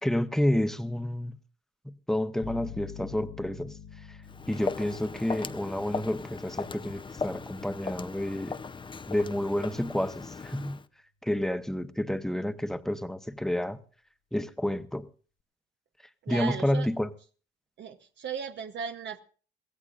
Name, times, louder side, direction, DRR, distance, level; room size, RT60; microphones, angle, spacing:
voice 1, 0.0-1.4 1.8-3.7 4.1-4.2 4.5-8.5 9.1-10.8 11.2-13.8 14.3-15.0 16.3-17.1, left 1 dB, ahead, 0.9 m, -29 dB
sound 1, 2.4-10.1, left 7 dB, 70° left, 1.3 m, -48 dB
Walk footsteps, 4.3-10.9, left 4 dB, 25° left, 0.6 m, -38 dB
voice 2, 16.2-16.9 17.8-19.2, right 7 dB, 65° right, 0.9 m, -36 dB
23.0 x 16.0 x 2.5 m
cardioid pair, 90°, 20 cm